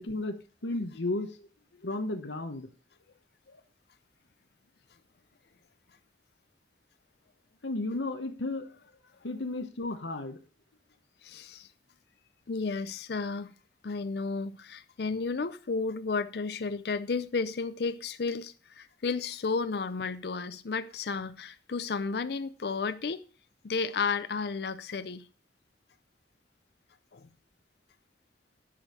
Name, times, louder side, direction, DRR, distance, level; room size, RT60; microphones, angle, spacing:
voice 1, 0.0-1.4 1.8-2.7 3.5-3.6 7.6-8.8 9.2-10.4, left 2 dB, 80° left, 1.0 m, -34 dB
voice 2, 11.2-11.7 12.5-13.5 13.8-23.3 23.6-25.3 27.1-27.3, left 4 dB, 60° left, 0.5 m, -32 dB
10.0 x 5.3 x 6.2 m
head